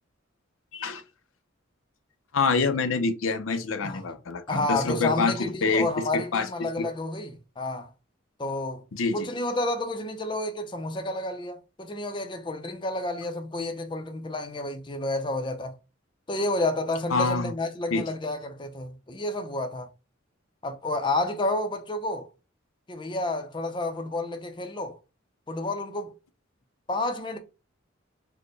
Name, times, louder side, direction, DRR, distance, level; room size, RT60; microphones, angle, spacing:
voice 1, 2.3-6.9 8.9-9.3 17.1-17.5 17.9-18.0, left 4 dB, 85° left, 0.5 m, -26 dB
voice 2, 4.5-7.9 8.4-8.8 9.1-15.7 16.3-19.9 20.6-22.3 22.9-25.0 25.5-26.1 26.9-27.4, left 2 dB, 25° left, 0.5 m, -30 dB
4.0 x 2.1 x 3.2 m
head